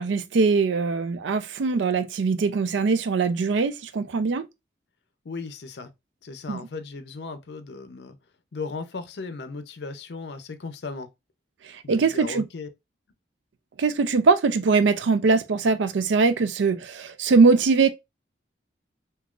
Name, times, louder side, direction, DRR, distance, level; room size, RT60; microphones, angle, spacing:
voice 1, 0.0-4.5 6.5-6.6 11.9-12.4 13.8-17.9, right 4 dB, 80° right, 0.4 m, -21 dB
voice 2, 5.2-5.9 6.2-8.2 8.5-11.1 11.8-12.7, left 4 dB, 65° left, 0.5 m, -36 dB
3.6 x 2.8 x 2.3 m
head